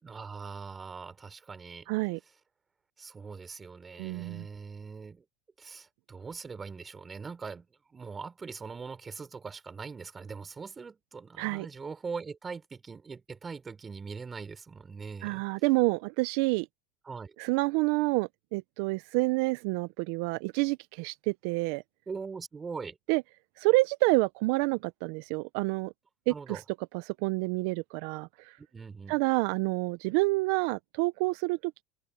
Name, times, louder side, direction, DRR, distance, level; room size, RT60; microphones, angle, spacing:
voice 1, 0.0-1.9 3.0-5.2 5.6-7.7 7.9-15.4 17.0-17.3 22.1-23.0 26.3-26.6 28.6-29.2, right 5 dB, 25° right, 4.6 m, -41 dB
voice 2, 1.9-2.2 4.0-4.5 11.4-11.7 15.2-16.7 17.4-21.8 23.1-23.2 23.6-25.9 26.3-26.6 26.9-28.6 29.1-31.8, right 23 dB, 70° right, 0.7 m, -28 dB
open air
supercardioid pair, 100°, 0 cm